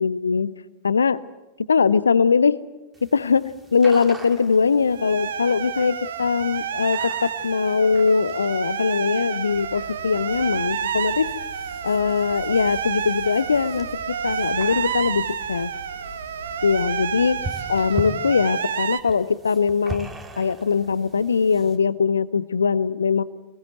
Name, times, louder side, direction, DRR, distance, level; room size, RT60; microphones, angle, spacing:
voice 1, 0.0-0.6 0.8-1.2 1.7-2.6 3.0-11.4 11.8-15.7 16.6-23.2, left 5 dB, 75° left, 19 dB, 0.7 m, -21 dB
sound 1, 2.9-21.8, right 2 dB, 15° right, 3.0 m, -42 dB
sound 2, 4.9-19.0, right 8 dB, 65° right, 1.1 m, -29 dB
sound 3, 9.5-18.0, right 2 dB, 80° right, 1.8 m, -43 dB
26.0 x 20.5 x 7.9 m, 1.1 s
figure-of-eight pair, 90°, 0 cm